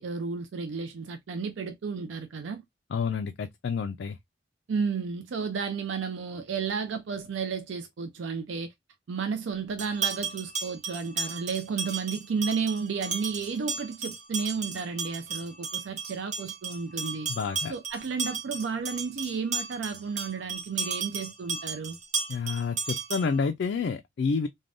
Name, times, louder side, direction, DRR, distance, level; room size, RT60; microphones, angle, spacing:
voice 1, 0.0-2.6 4.7-8.7 9.1-17.3 17.7-22.0, right 5 dB, 75° right, 0.4 m, -32 dB
voice 2, 2.9-4.2 17.3-17.7 22.3-24.5, left 5 dB, 60° left, 0.3 m, -29 dB
sound 1, 9.8-23.5, right 5 dB, 40° right, 0.7 m, -35 dB
3.3 x 2.2 x 2.5 m
head